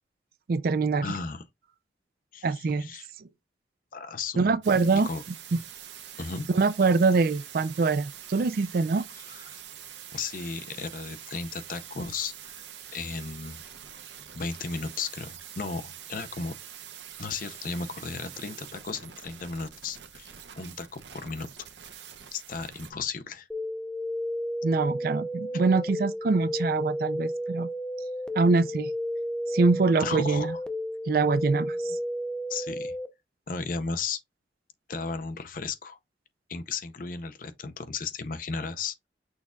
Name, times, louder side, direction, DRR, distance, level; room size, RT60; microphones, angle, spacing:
voice 1, 0.5-1.0 2.4-2.9 4.4-5.1 5.5-5.6 6.5-9.0 24.6-27.7 28.4-28.9 29.5-30.5 31.1-32.0, right 4 dB, 55° right, 0.4 m, -24 dB
voice 2, 1.0-1.4 2.3-3.1 3.9-4.5 4.9-5.2 6.2-6.5 9.2-9.6 10.1-12.5 12.9-13.6 14.3-16.6 17.2-21.5 22.3-23.5 30.0-30.6 32.5-32.9 33.5-34.2 34.9-36.0 36.5-39.1, left 4 dB, 50° left, 0.6 m, -35 dB
sound 1, 4.6-22.9, right 9 dB, 80° right, 0.8 m, -45 dB
sound 2, 23.5-33.1, equal, 5° left, 0.5 m, -32 dB
6.3 x 2.3 x 3.6 m
head